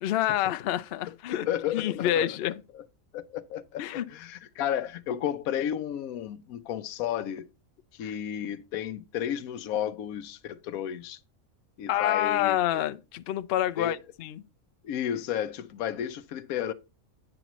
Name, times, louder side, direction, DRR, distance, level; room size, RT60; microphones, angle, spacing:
voice 1, 0.0-1.5 1.7-2.6 3.8-4.1 8.0-8.1 11.9-14.4, left 12 dB, 65° left, 0.6 m, -28 dB
voice 2, 1.3-2.8 3.1-7.5 7.9-11.2 11.8-12.8 13.8-13.9 14.8-16.7, left 10 dB, 85° left, 1.1 m, -33 dB
8.9 x 7.0 x 3.0 m
omnidirectional pair, 1.4 m